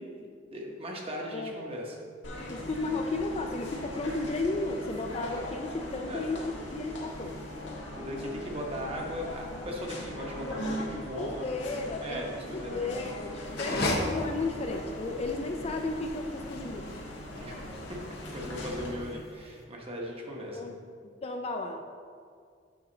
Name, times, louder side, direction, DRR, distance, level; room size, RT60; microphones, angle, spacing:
voice 1, 0.0-2.0 6.1-6.3 7.9-11.6 12.0-13.0 13.6-13.8 17.4-17.6 17.9-20.7, equal, 30° right, -1 dB, 1.1 m, -38 dB
voice 2, 1.3-1.7 2.5-7.4 10.2-10.8 11.2-12.2 12.5-17.0 20.5-20.8 21.2-21.9, left 2 dB, 35° left, 4 dB, 0.4 m, -34 dB
sound 1, 2.2-18.9, left 1 dB, 85° left, 1.6 m, -40 dB
sound 2, 13.4-19.6, left 1 dB, 60° left, 0.9 m, -36 dB
8.6 x 5.0 x 3.9 m, 2.1 s
head